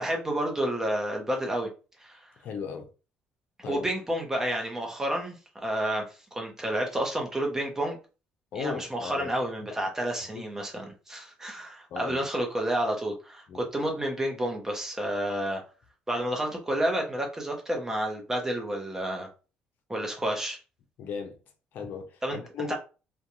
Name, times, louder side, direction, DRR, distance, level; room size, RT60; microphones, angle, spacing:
voice 1, 0.0-1.7 2.0-2.2 3.6-5.3 5.6-8.0 8.5-15.6 16.1-19.3 19.9-20.6 22.2-22.4 22.7-22.8, right 1 dB, 15° right, 0.7 m, -30 dB
voice 2, 2.4-2.9 3.6-3.9 8.5-9.3 10.3-10.4 11.9-12.2 13.5-13.6 21.0-21.4 21.7-22.7, left 6 dB, 60° left, 0.6 m, -36 dB
2.4 x 2.2 x 2.9 m
cardioid pair, 120°, 3 cm